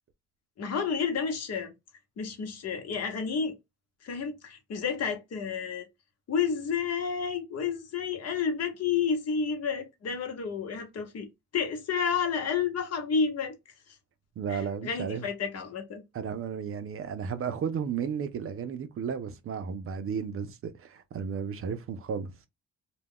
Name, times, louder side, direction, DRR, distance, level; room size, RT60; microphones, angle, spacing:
voice 1, 0.6-1.7 2.2-3.6 4.0-5.9 6.3-11.3 11.5-13.5 14.5-16.0, left 6 dB, 55° left, 1.0 m, -30 dB
voice 2, 14.4-15.3 16.1-22.3, right 7 dB, 50° right, 0.5 m, -33 dB
2.3 x 2.2 x 3.5 m
cardioid pair, 90°, 30 cm